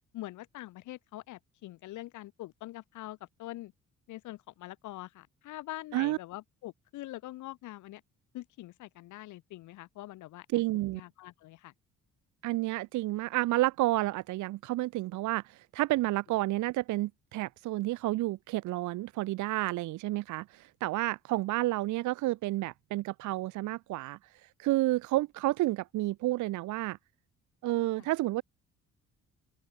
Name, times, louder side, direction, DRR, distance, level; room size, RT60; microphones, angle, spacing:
voice 1, 0.1-3.7 4.1-8.0 8.3-10.6 10.9-11.7 28.0-28.1, left 16 dB, 75° left, 0.6 m, -44 dB
voice 2, 10.5-11.0 12.4-24.2 24.6-27.0 27.6-28.4, right 17 dB, 75° right, 0.5 m, -30 dB
open air
cardioid pair, 90°, 30 cm